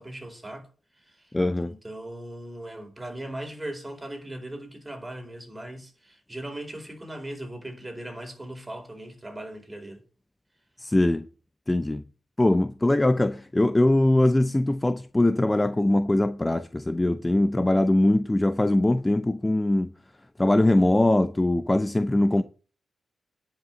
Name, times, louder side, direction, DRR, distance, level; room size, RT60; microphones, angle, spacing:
voice 1, 0.0-1.4 1.6-10.0, right 1 dB, 20° right, 4.4 m, -39 dB
voice 2, 1.3-1.7 10.8-11.3 11.7-12.0 12.4-19.9 20.4-22.4, left 1 dB, 20° left, 0.7 m, -22 dB
10.5 x 6.0 x 7.4 m
supercardioid pair, 50°, 0 cm